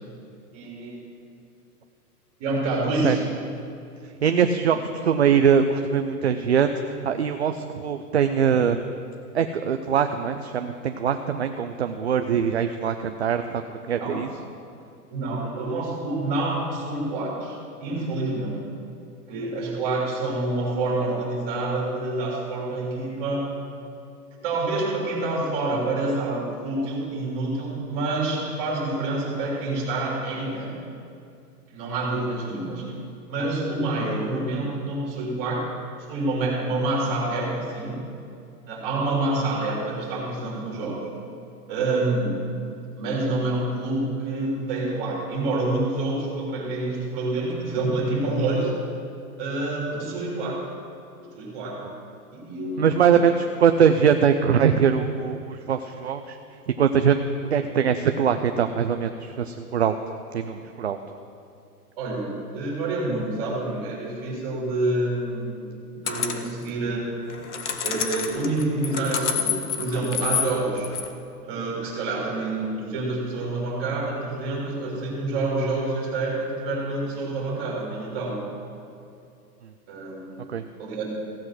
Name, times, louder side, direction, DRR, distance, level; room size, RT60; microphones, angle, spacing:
voice 1, 0.5-1.0 2.4-3.2 14.0-14.2 15.1-18.7 19.3-23.5 24.4-30.8 31.7-32.9 33.3-35.7 36.0-38.1 38.7-41.1 41.7-42.4 43.0-48.7 49.4-50.7 51.3-51.8 52.3-53.2 62.0-67.1 67.8-70.9 71.4-78.4 79.9-80.5 80.8-81.0, right 2 dB, 25° right, -4 dB, 3.1 m, -27 dB
voice 2, 4.2-8.9 9.3-14.3 52.8-56.4 56.8-57.2 57.5-60.0 60.3-61.0 80.5-80.6, right 7 dB, 45° right, 7 dB, 0.5 m, -22 dB
sound 1, 66.1-66.5 67.3-71.1, left 7 dB, 50° left, 1.0 m, -28 dB
15.5 x 7.9 x 5.9 m, 2.5 s
hypercardioid pair, 165°, 47 cm